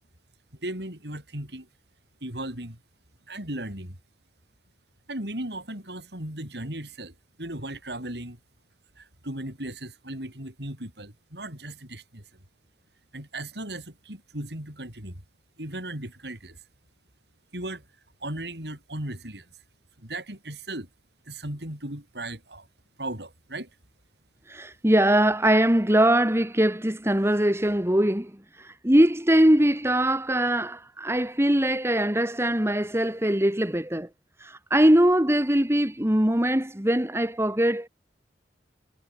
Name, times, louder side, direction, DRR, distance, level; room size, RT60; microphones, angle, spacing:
voice 1, 0.6-1.7 2.2-2.8 3.3-4.0 5.1-8.4 9.0-12.2 13.1-15.2 15.6-16.6 17.5-17.8 18.2-19.5 20.0-20.9 21.3-22.7 23.0-23.7, right 1 dB, 65° right, 8.0 m, -36 dB
voice 2, 24.5-28.3 28.6-34.1 34.4-37.9, right 1 dB, 15° right, 2.1 m, -22 dB
head